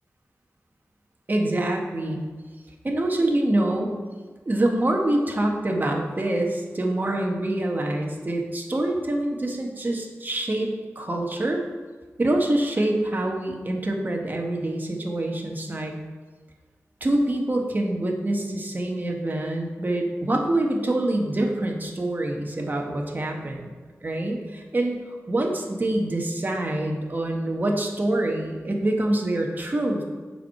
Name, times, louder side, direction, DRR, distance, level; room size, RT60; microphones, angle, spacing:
voice 1, 1.3-2.3 2.8-4.0 4.4-11.6 12.2-15.9 17.0-23.7 24.0-30.0, right 1 dB, 35° right, 1 dB, 1.2 m, -25 dB
7.0 x 4.7 x 5.7 m, 1.4 s
wide cardioid pair, 95°, 5 cm